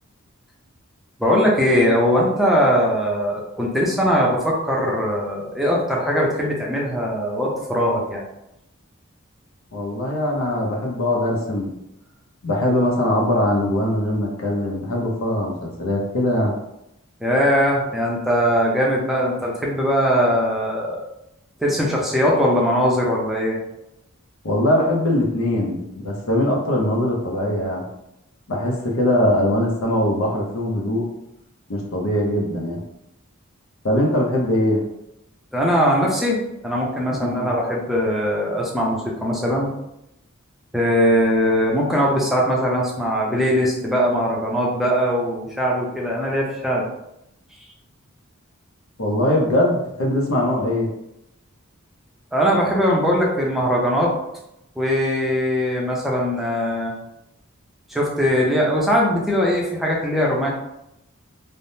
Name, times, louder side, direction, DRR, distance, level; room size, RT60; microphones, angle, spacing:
voice 1, 1.2-8.2 17.2-21.0 21.6-23.6 35.5-36.4 36.6-39.7 40.7-46.8 52.3-54.1 54.8-56.9 57.9-60.5, equal, ahead, -4 dB, 0.5 m, -20 dB
voice 2, 9.7-11.7 12.4-16.5 24.4-27.8 28.5-31.1 31.7-32.8 33.8-34.8 37.2-37.5 49.0-50.9, left 1 dB, 75° left, -1 dB, 0.7 m, -21 dB
3.3 x 2.1 x 2.7 m, 0.85 s
head